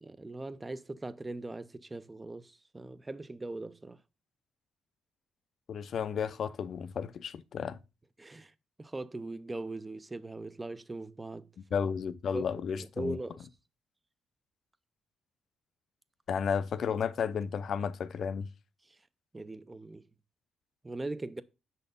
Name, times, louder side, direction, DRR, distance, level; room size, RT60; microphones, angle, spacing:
voice 1, 0.0-4.0 8.2-8.5 8.8-11.5 12.3-12.5 12.8-13.5 18.9-19.0 19.3-20.1 20.8-21.4, right 2 dB, 15° right, 0.4 m, -40 dB
voice 2, 5.7-7.8 11.7-13.2 16.3-18.5, left 7 dB, 50° left, 0.5 m, -33 dB
6.6 x 4.2 x 5.2 m
cardioid pair, 140°, 0 cm